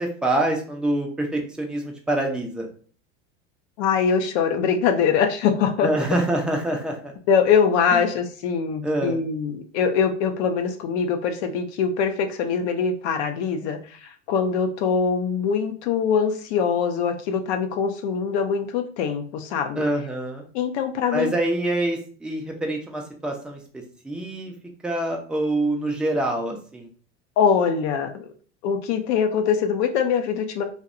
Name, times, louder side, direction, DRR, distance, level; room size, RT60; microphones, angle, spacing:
voice 1, 0.0-2.7 5.8-7.1 7.9-8.0 8.8-9.2 19.8-20.4 21.1-24.5 24.8-26.9, right 1 dB, ahead, 1 dB, 0.4 m, -26 dB
voice 2, 3.8-5.9 7.3-19.8 20.5-21.3 27.4-28.3 28.6-30.6, left 6 dB, 60° left, 6 dB, 0.5 m, -23 dB
2.6 x 2.1 x 2.5 m, 0.42 s
hypercardioid pair, 85°, 38 cm